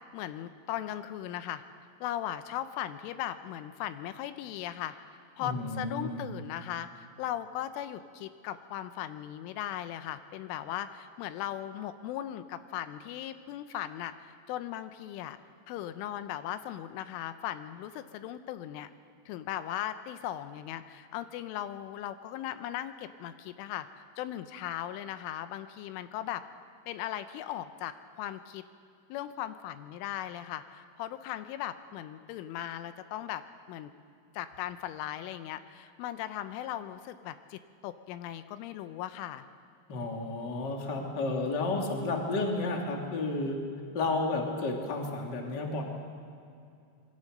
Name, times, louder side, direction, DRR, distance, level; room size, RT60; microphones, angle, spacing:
voice 1, 0.1-1.6 2.0-4.9 5.4-15.4 15.7-18.9 19.3-23.9 24.2-26.4 26.9-28.6 29.1-33.4 33.7-33.9 34.3-39.4, left 12 dB, 85° left, 11 dB, 3.3 m, -38 dB
voice 2, 5.4-6.3 39.9-43.6 43.9-45.8, left 2 dB, 30° left, 1 dB, 2.2 m, -32 dB
26.0 x 22.5 x 6.6 m, 2.5 s
omnidirectional pair, 5.7 m